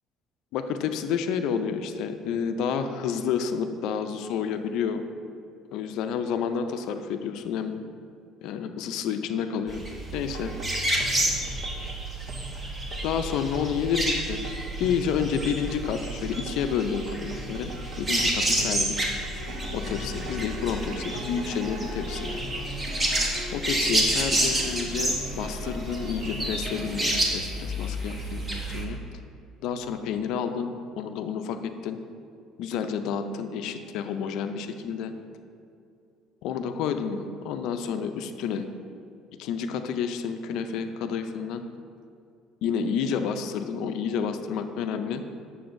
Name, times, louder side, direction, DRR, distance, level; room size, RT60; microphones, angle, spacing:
voice 1, 0.5-5.1 5.7-7.8 8.4-9.8 10.1-10.5 13.0-14.4 14.8-17.7 18.0-19.0 19.7-22.4 23.5-29.0 29.6-32.0 32.6-35.1 36.4-38.6 39.4-41.6 42.6-45.2, left 7 dB, 70° left, 8 dB, 0.4 m, -30 dB
sound 1, 9.7-28.8, right 1 dB, 20° right, 1.0 m, -29 dB
sound 2, 10.3-27.2, right 2 dB, 55° right, 0.7 m, -41 dB
8.7 x 6.8 x 2.6 m, 2.5 s
cardioid pair, 140°, 0 cm